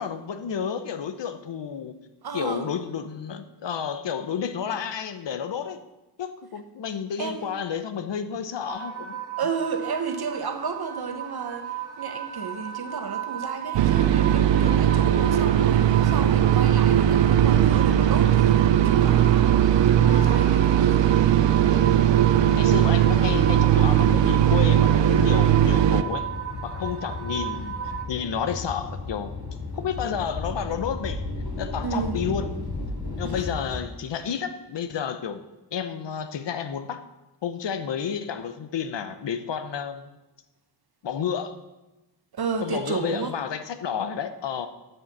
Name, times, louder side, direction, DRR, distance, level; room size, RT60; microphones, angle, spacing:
voice 1, 0.0-1.9 2.3-5.8 6.2-9.2 22.2-26.3 26.6-27.8 28.1-29.3 29.8-31.2 31.6-32.5 33.2-35.4 35.7-37.0 37.4-40.1 41.0-41.6 42.6-44.7, left 7 dB, 80° left, 0.9 m, -31 dB
voice 2, 2.2-2.7 7.2-7.5 9.4-21.2 31.8-32.2 33.2-33.5 42.3-43.4, right 5 dB, 60° right, 1.2 m, -32 dB
sound 1, 8.7-28.0, right 10 dB, 30° right, 2.0 m, -35 dB
sound 2, 13.7-26.0, right 10 dB, 85° right, 0.6 m, -19 dB
sound 3, 15.9-33.8, left 3 dB, 60° left, 2.9 m, -36 dB
11.5 x 6.7 x 6.1 m
wide cardioid pair, 85°, 42 cm